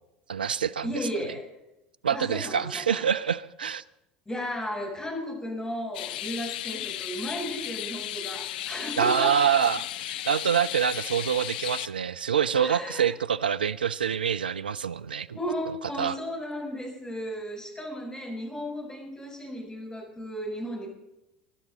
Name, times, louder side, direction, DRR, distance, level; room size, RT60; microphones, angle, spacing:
voice 1, 0.3-0.9 2.0-3.8 9.0-15.3 16.0-16.2, right 8 dB, 90° right, 15 dB, 0.4 m, -26 dB
voice 2, 0.8-1.5 2.1-3.0 4.3-9.4 12.5-13.1 15.3-20.9, equal, 15° left, 0 dB, 7.1 m, -34 dB
sound 1, 5.9-11.9, left 13 dB, 75° left, 0.5 m, -35 dB
23.0 x 12.0 x 4.1 m, 0.91 s
hypercardioid pair, 75°, 5 cm